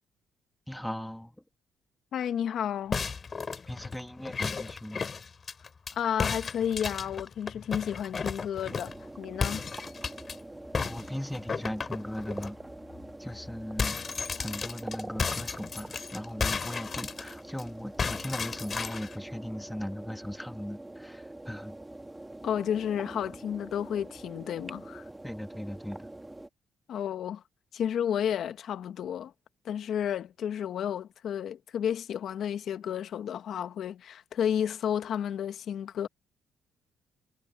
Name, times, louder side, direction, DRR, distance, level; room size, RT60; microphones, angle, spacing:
voice 1, 0.7-1.4 3.7-5.1 10.8-12.6 13.2-14.0 14.4-21.8 25.2-26.1, equal, 5° left, 2.3 m, -38 dB
voice 2, 2.1-3.0 5.9-9.7 22.4-25.0 26.9-27.4 27.7-29.3 29.6-36.1, left 9 dB, 70° left, 1.3 m, -32 dB
sound 1, 2.9-5.9 6.2-9.0 9.4-10.3 10.7-12.5 12.9-13.1 13.3-17.6 18.0-19.2, left 5 dB, 40° left, 3.0 m, -34 dB
sound 2, 8.6-26.5, right 1 dB, 10° right, 1.7 m, -45 dB
cardioid pair, 90°, 0 cm